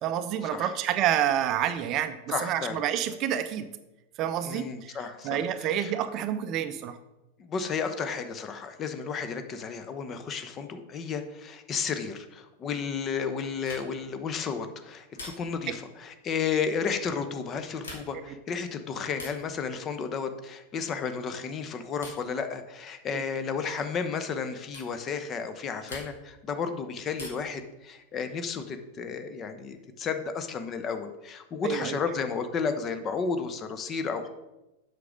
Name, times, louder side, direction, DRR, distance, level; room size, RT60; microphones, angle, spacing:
voice 1, 0.0-3.7 4.2-7.0 23.1-23.2 31.6-32.0, right 10 dB, 35° right, 11 dB, 0.6 m, -28 dB
voice 2, 2.3-2.8 4.4-5.4 5.7-5.9 7.4-34.3, left 5 dB, 25° left, 8 dB, 0.9 m, -32 dB
sound 1, 13.6-14.1 15.1-15.7 17.7-18.3 19.1-19.5 20.8-21.1 22.0-22.4 23.7-23.9 24.7-25.0 25.9-26.4 27.1-27.6 29.1-29.8, left 2 dB, 70° left, 2.2 m, -45 dB
8.1 x 6.0 x 5.1 m, 0.99 s
figure-of-eight pair, 90°, 0 cm